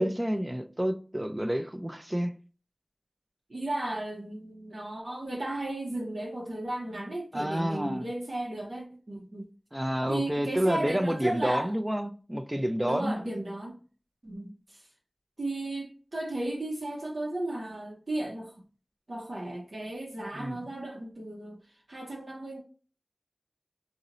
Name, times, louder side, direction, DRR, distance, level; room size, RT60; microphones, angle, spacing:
voice 1, 0.0-2.3 7.3-8.1 9.7-13.1 20.3-20.7, equal, 15° right, 0.4 m, -29 dB
voice 2, 3.5-9.5 10.1-11.7 12.8-13.8 14.2-14.9 15.4-18.5 19.1-21.6 21.9-22.6, right 1 dB, 75° right, 0.6 m, -35 dB
2.8 x 2.0 x 2.5 m
wide cardioid pair, 55°, 0 cm